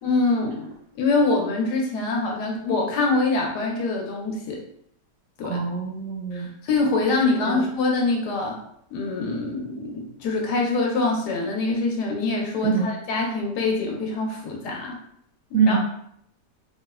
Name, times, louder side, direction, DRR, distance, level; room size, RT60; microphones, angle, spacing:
voice 1, 0.0-0.7 1.0-4.6 5.4-5.6 6.3-8.6 8.9-15.0 15.7-15.8, left 3 dB, 75° left, 0 dB, 1.2 m, -24 dB
voice 2, 5.4-6.5 7.4-7.6 12.6-12.9 15.5-15.8, right 5 dB, 70° right, -3 dB, 0.9 m, -23 dB
3.3 x 2.1 x 2.3 m, 0.69 s
omnidirectional pair, 1.8 m